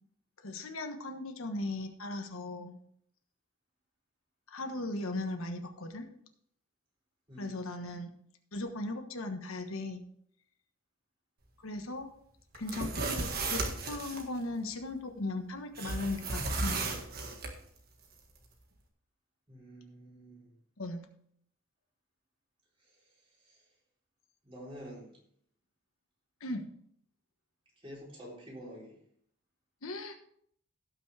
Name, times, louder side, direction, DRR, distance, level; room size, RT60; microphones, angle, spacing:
voice 1, 0.4-2.8 4.5-6.1 7.4-8.1 8.5-10.0 11.6-12.1 12.5-17.0 20.8-21.1 26.4-26.6 29.8-30.2, left 2 dB, 80° left, 5 dB, 1.3 m, -38 dB
voice 2, 7.3-7.6 19.5-20.5 22.8-23.7 24.4-25.2 27.8-29.0, equal, 25° right, -5 dB, 3.8 m, -49 dB
sound 1, 12.5-14.2 15.8-17.5, right 3 dB, 45° right, 1.7 m, -34 dB
17.0 x 6.2 x 3.4 m, 0.65 s
head